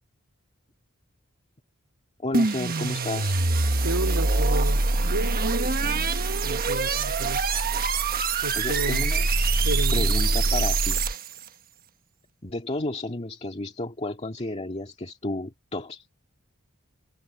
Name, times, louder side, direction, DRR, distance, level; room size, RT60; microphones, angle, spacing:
voice 1, 2.2-3.4 8.5-9.3 9.9-11.0 12.4-16.2, left 2 dB, 30° left, 2.0 m, -32 dB
sound 1, 2.3-11.4, right 3 dB, 45° right, 1.3 m, -24 dB
voice 2, 3.8-6.1 6.4-7.4 8.4-9.1 9.6-10.2, right 2 dB, 85° right, 3.0 m, -32 dB
head